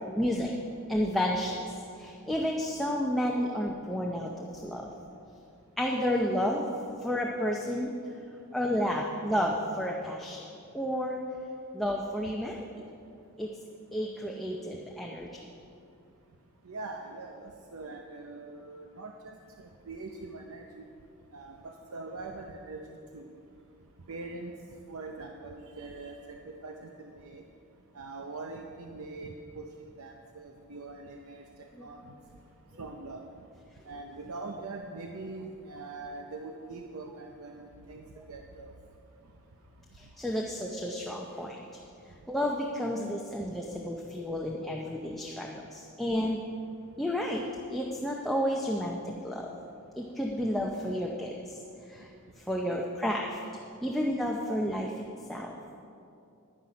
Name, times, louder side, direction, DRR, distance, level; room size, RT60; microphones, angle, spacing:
voice 1, 0.1-0.5 0.9-1.6 2.0-4.9 5.8-6.7 7.0-7.9 8.5-10.4 10.7-11.2 11.7-12.6 13.4-13.5 13.9-15.3 31.8-31.9 38.2-38.3 40.0-41.6 42.3-46.4 47.0-47.4 47.7-49.5 50.0-51.6 51.9-52.1 52.5-53.4 53.8-55.5, equal, ahead, -1 dB, 0.6 m, -31 dB
voice 2, 16.7-20.8 21.3-22.8 23.1-23.3 24.1-24.5 24.9-27.4 27.9-31.4 31.8-32.0 32.8-33.2 33.9-38.0 38.3-38.7, right 3 dB, 70° right, 3 dB, 0.7 m, -42 dB
11.5 x 9.8 x 5.2 m, 2.6 s
head